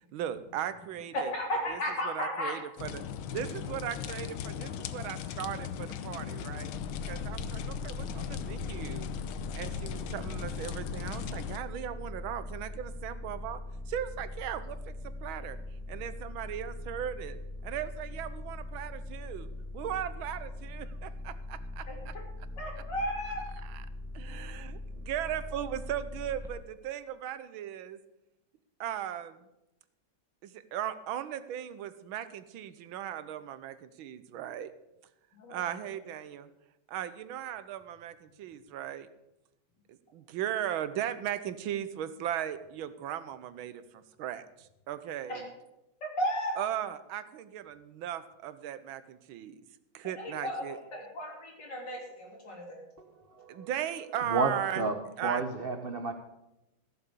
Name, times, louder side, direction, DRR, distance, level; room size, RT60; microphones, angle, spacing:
voice 1, 0.1-3.0 3.3-6.7 7.1-9.1 9.5-13.6 13.9-15.6 15.9-17.4 17.6-19.5 19.7-22.2 23.2-23.9 24.2-28.0 28.8-29.5 30.4-34.7 35.5-36.5 36.9-39.1 39.9-45.5 46.6-49.6 49.9-50.8 53.5-54.9 55.2-55.4, right 10 dB, 85° right, 1.6 m, -37 dB
voice 2, 1.1-2.5 21.9-22.0 22.6-23.4 35.3-35.7 45.3-45.4 46.2-46.5 50.2-52.8, equal, 60° left, 3.9 m, -34 dB
sound 1, 2.8-11.6, left 8 dB, 85° left, 1.6 m, -38 dB
sound 2, 6.7-26.5, left 2 dB, 5° left, 0.6 m, -41 dB
voice 3, 53.0-53.7 54.2-54.9 55.2-56.1, right 3 dB, 55° right, 0.6 m, -31 dB
15.5 x 7.1 x 6.8 m
omnidirectional pair, 2.2 m